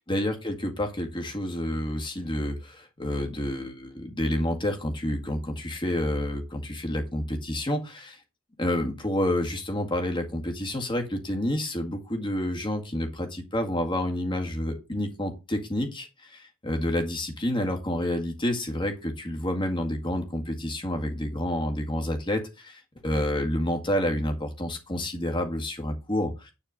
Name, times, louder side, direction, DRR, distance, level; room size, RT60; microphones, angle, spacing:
voice 1, 0.0-8.2 8.6-26.5, left 1 dB, 20° left, 3 dB, 1.9 m, -29 dB
10.0 x 4.5 x 6.4 m, 0.27 s
head